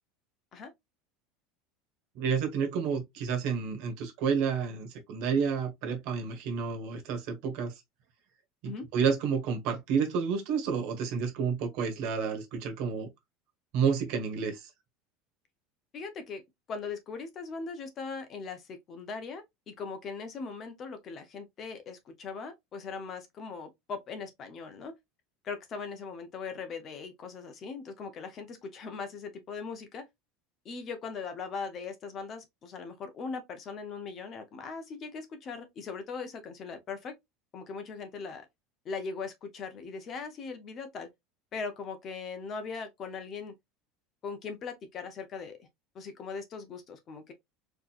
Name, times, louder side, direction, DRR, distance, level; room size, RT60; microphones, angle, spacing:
voice 1, 2.1-7.7 8.6-13.1 13.7-14.7, right 6 dB, 55° right, 1.4 m, -30 dB
voice 2, 15.9-16.4 16.7-24.9 25.4-30.0 30.6-37.1 37.5-38.5 38.8-41.1 41.5-43.5 44.2-45.7 45.9-47.3, left 5 dB, 30° left, 0.7 m, -40 dB
4.4 x 2.9 x 2.4 m
cardioid pair, 165°, 0 cm